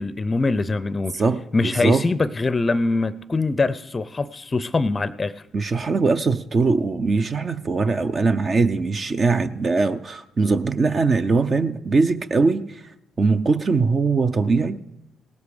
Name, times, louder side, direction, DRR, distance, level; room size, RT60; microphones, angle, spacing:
voice 1, 0.0-1.2 1.5-5.4, left 3 dB, 30° left, 0.5 m, -23 dB
voice 2, 1.1-2.0 5.5-12.8 13.2-14.8, right 4 dB, 45° right, 0.6 m, -21 dB
18.0 x 8.1 x 5.0 m
hypercardioid pair, 50°, 0 cm